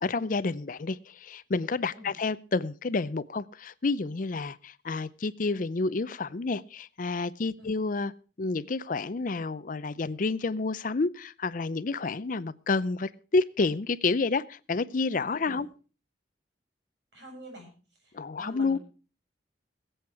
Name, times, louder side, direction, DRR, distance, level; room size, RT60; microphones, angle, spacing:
voice 1, 0.0-8.1 8.4-15.7 18.1-18.8, left 3 dB, 50° left, 17 dB, 0.5 m, -29 dB
voice 2, 17.1-17.7 18.0-18.8, equal, 75° right, 2 dB, 7.5 m, -46 dB
21.0 x 7.9 x 4.7 m, 0.36 s
head